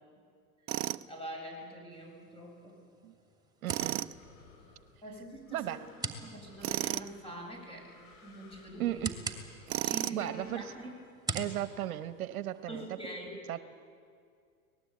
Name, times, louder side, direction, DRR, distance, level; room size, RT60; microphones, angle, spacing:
voice 1, 0.6-2.8 5.0-9.0 9.8-11.0 12.7-13.3, right 1 dB, 10° left, 0 dB, 7.4 m, -45 dB
Tools, 0.7-1.0 3.7-4.1 6.6-7.1 9.7-10.3, right 16 dB, 30° right, 0.5 m, -33 dB
sound 1, 1.9-12.9, right 3 dB, 10° right, 2.6 m, -45 dB
voice 2, 3.6-4.0 5.5-5.8 8.8-9.1 10.1-10.6 11.3-12.9 13.5-13.6, right 13 dB, 70° right, 12 dB, 1.1 m, -35 dB
sound 2, 3.7-10.8, left 3 dB, 45° left, 7.6 m, -59 dB
24.5 x 19.0 x 8.5 m, 2.2 s
hypercardioid pair, 100°, 44 cm